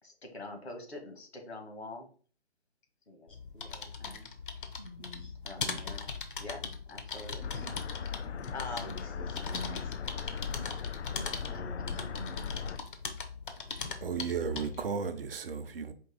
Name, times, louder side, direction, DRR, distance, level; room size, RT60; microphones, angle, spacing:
voice 1, 0.0-2.1 3.1-4.3 5.4-6.1 6.4-7.5 8.5-9.1 11.5-11.6, left 2 dB, 70° left, 1.7 m, -45 dB
sound 1, 3.3-14.9, left 5 dB, 50° left, 0.7 m, -40 dB
voice 2, 4.8-5.3 7.5-7.7 8.0-10.8 11.0-12.8 13.7-13.8, right 1 dB, 10° left, 0.4 m, -48 dB
sound 2, 7.4-12.8, left 6 dB, 90° left, 0.5 m, -39 dB
voice 3, 14.0-15.9, right 6 dB, 55° right, 0.7 m, -34 dB
4.6 x 2.6 x 4.0 m
hypercardioid pair, 160°, 33 cm